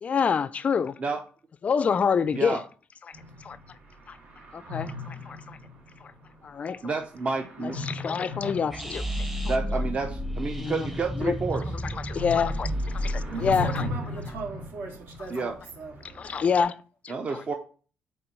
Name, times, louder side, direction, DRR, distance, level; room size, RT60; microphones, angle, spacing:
voice 1, 0.0-1.0 1.6-2.6 3.1-3.2 3.4-3.6 4.1-4.2 4.5-5.6 6.0-6.1 6.4-6.9 7.6-9.0 10.6-10.9 11.2-11.3 11.8-13.9 16.1-16.8 17.0-17.4, left 6 dB, 40° left, 0.3 m, -27 dB
voice 2, 2.3-2.6 6.8-7.8 9.4-11.6 15.3-15.6 17.1-17.5, right 4 dB, 35° right, 0.6 m, -30 dB
sound 1, 3.1-16.6, left 2 dB, 50° right, 2.6 m, -39 dB
sound 2, 8.7-13.8, equal, 5° right, 0.8 m, -32 dB
voice 3, 13.2-16.0, right 4 dB, 65° right, 2.1 m, -38 dB
4.5 x 4.3 x 5.4 m
cardioid pair, 115°, 4 cm